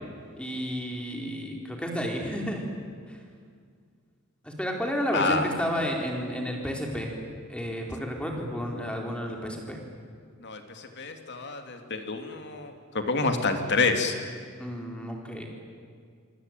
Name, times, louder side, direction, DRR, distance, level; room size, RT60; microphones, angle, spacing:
voice 1, 0.4-2.6 3.1-3.2 4.4-7.1 7.5-9.8 14.6-15.5, equal, 5° left, 1 dB, 4.2 m, -31 dB
voice 2, 5.1-5.4 10.4-14.1, left 3 dB, 55° left, 5 dB, 2.9 m, -28 dB
25.5 x 25.0 x 9.3 m, 2.1 s
head